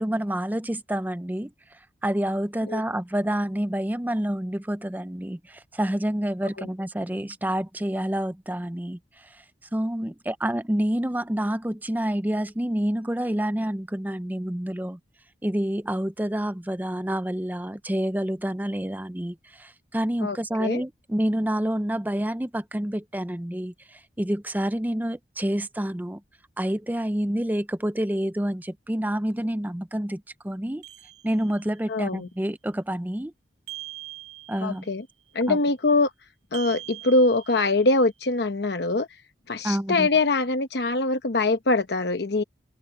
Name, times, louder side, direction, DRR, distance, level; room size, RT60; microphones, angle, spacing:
voice 1, 0.0-1.5 2.0-9.0 9.7-15.0 15.4-26.2 26.6-30.8 31.2-33.3 34.5-34.9 35.5-35.6 39.6-40.1, right 1 dB, 10° right, 0.5 m, -28 dB
voice 2, 20.2-20.8 31.9-32.3 34.6-35.0 35.3-36.1 36.5-39.1 39.5-42.4, left 2 dB, 65° left, 0.9 m, -23 dB
sound 1, 30.8-31.8 33.7-34.9 36.5-38.0, right 15 dB, 60° right, 2.9 m, -42 dB
open air
head